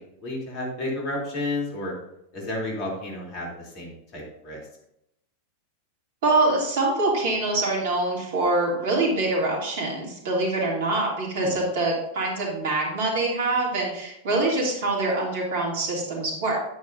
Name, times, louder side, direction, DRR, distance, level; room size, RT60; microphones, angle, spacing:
voice 1, 0.0-1.9 2.3-4.6 11.4-11.6, left 2 dB, 40° left, -2 dB, 3.1 m, -32 dB
voice 2, 6.2-16.6, right 2 dB, 55° right, -2 dB, 2.7 m, -24 dB
9.6 x 8.3 x 2.7 m, 0.79 s
figure-of-eight pair, 90°, 0 cm